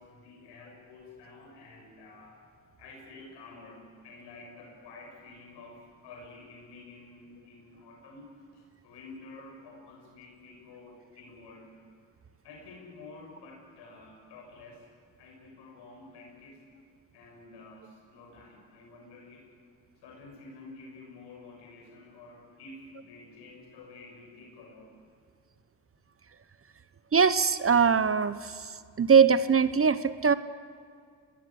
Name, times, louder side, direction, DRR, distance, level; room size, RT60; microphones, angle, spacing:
voice 1, 0.0-2.4 2.8-11.7 12.4-14.8 15.2-16.6 17.1-19.5 20.0-24.9, left 3 dB, 85° left, 0 dB, 6.6 m, -50 dB
voice 2, 27.1-28.7 29.0-30.3, right 6 dB, 35° right, 14 dB, 1.0 m, -22 dB
25.0 x 19.0 x 8.7 m, 2.2 s
cardioid pair, 70°, 40 cm